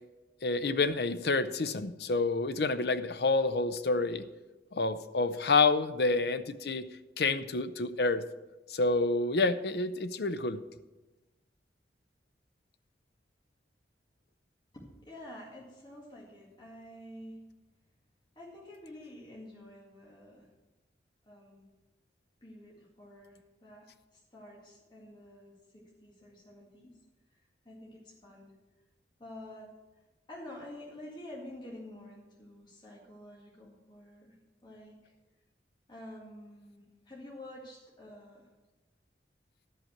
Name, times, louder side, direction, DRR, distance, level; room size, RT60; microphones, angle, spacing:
voice 1, 0.4-4.3 4.7-6.9 7.2-8.2 8.7-10.6, left 3 dB, 65° left, 11 dB, 0.6 m, -28 dB
voice 2, 14.7-17.4 18.4-20.5 21.3-21.7 22.4-26.9 27.3-28.5 29.2-29.7 30.3-35.1 35.9-38.5, left 1 dB, 25° left, -4 dB, 2.0 m, -49 dB
12.0 x 5.5 x 7.2 m, 1.1 s
head